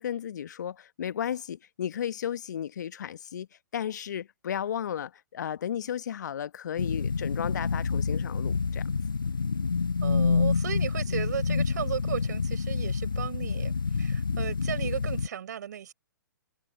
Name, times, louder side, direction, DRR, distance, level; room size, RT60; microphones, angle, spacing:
voice 1, 0.0-3.5 3.7-8.9, left 9 dB, 60° left, 1.3 m, -34 dB
sound 1, 6.8-15.3, left 5 dB, 85° left, 0.4 m, -28 dB
voice 2, 10.0-15.9, right 9 dB, 60° right, 5.3 m, -35 dB
figure-of-eight pair, 120°, 11 cm